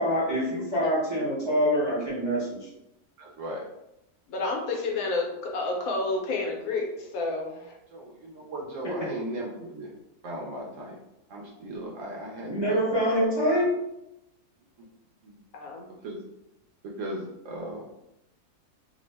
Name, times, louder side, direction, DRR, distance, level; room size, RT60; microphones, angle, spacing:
voice 1, 0.0-2.7 12.5-13.7, equal, 30° right, -8 dB, 0.5 m, -25 dB
voice 2, 3.2-3.7 7.9-9.9 10.2-11.0 11.3-12.9 14.8-14.9 15.2-15.4 15.8-16.2 16.8-17.8, right 1 dB, 65° right, -3 dB, 0.8 m, -37 dB
voice 3, 4.3-7.5 15.5-15.8, left 3 dB, 75° left, 0 dB, 1.0 m, -29 dB
2.7 x 2.0 x 3.2 m, 0.88 s
omnidirectional pair, 1.6 m